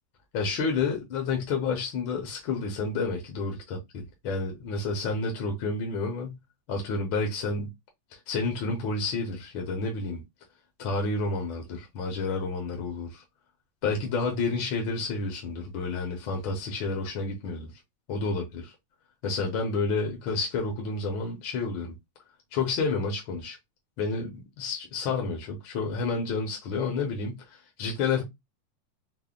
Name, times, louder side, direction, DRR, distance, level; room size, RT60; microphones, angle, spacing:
voice 1, 0.3-6.4 6.7-7.7 8.1-10.2 10.8-13.2 13.8-17.7 18.1-18.7 19.2-22.0 22.5-23.6 24.0-27.4 27.8-28.2, left 4 dB, 65° left, 1.2 m, -30 dB
5.4 x 2.1 x 2.4 m
omnidirectional pair, 3.6 m